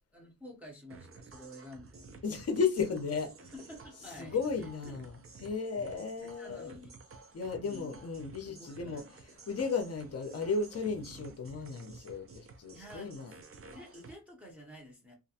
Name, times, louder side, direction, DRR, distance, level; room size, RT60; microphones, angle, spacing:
voice 1, 0.1-2.0 3.5-5.3 5.9-6.9 7.6-8.0 8.5-9.2 12.7-15.1, left 1 dB, 5° right, 0.7 m, -50 dB
sound 1, 0.9-14.1, right 4 dB, 40° right, 0.5 m, -53 dB
voice 2, 2.2-3.6 3.9-6.8 7.3-13.4, left 5 dB, 45° left, 0.6 m, -35 dB
2.4 x 2.2 x 2.7 m
wide cardioid pair, 120°, 36 cm